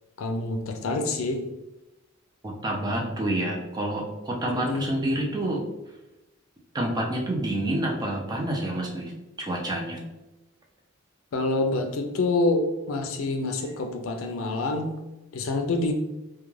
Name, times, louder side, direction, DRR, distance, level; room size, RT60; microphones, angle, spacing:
voice 1, 0.2-1.5 4.5-4.9 11.3-14.9 15.3-15.9, left 2 dB, 75° left, 5 dB, 0.4 m, -27 dB
voice 2, 2.4-5.6 6.7-10.0, right 1 dB, 20° right, -1 dB, 0.4 m, -28 dB
2.3 x 2.2 x 3.0 m, 1.0 s
head